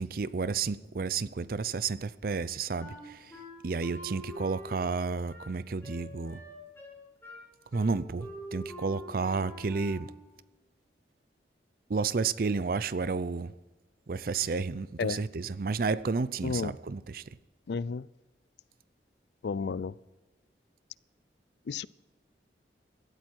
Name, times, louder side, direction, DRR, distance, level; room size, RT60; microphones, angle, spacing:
voice 1, 0.0-3.3 3.6-6.4 7.7-10.1 11.9-13.5 14.1-17.2, right 4 dB, 55° right, 0.5 m, -31 dB
Wind instrument woodwind instrument, 2.8-10.2, equal, 15° left, 5.2 m, -46 dB
voice 2, 17.7-18.1 19.4-19.9 21.7-21.9, left 5 dB, 70° left, 0.4 m, -32 dB
17.0 x 13.0 x 4.6 m
head